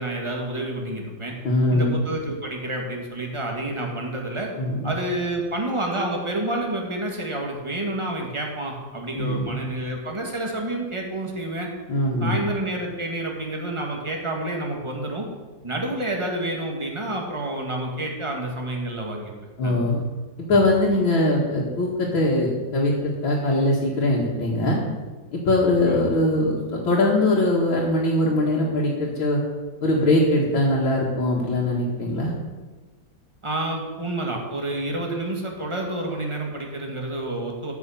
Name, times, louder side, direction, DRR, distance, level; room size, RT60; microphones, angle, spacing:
voice 1, 0.0-1.3 1.7-4.5 4.8-11.7 12.2-15.3 15.6-19.3 19.6-19.9 25.9-26.0 33.4-37.7, right 1 dB, 15° right, 0 dB, 1.8 m, -29 dB
voice 2, 1.4-2.0 4.6-4.9 9.2-9.5 11.9-12.4 19.6-20.0 20.5-24.8 25.3-29.4 29.8-32.3, left 1 dB, 85° left, -5 dB, 2.5 m, -21 dB
14.0 x 6.3 x 5.9 m, 1.3 s
omnidirectional pair, 2.1 m